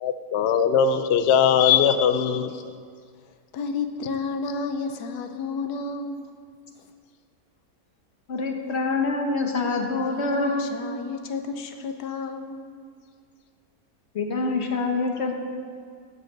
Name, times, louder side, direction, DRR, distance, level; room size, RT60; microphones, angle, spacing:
voice 1, 0.0-2.5, left 8 dB, 70° left, 10 dB, 0.6 m, -20 dB
voice 2, 3.5-6.2 10.1-12.6, left 4 dB, 85° left, 7 dB, 1.3 m, -31 dB
voice 3, 8.3-10.7 14.1-15.3, left 3 dB, 50° left, 3 dB, 1.1 m, -25 dB
10.5 x 6.8 x 6.6 m, 2.1 s
omnidirectional pair, 1.6 m